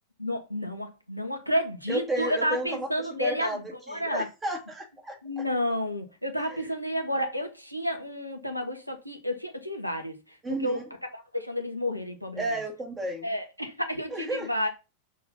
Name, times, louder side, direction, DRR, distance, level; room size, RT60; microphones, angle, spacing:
voice 1, 0.2-3.6 3.9-4.3 5.2-10.2 10.6-10.8 11.1-12.4 13.2-14.7, equal, 90° left, 1.1 m, -30 dB
voice 2, 1.9-3.6 3.9-5.4 6.5-6.7 10.4-10.8 12.4-13.3 14.1-14.5, right 1 dB, 15° right, 2.4 m, -33 dB
5.9 x 3.8 x 5.6 m
figure-of-eight pair, 90°, 0 cm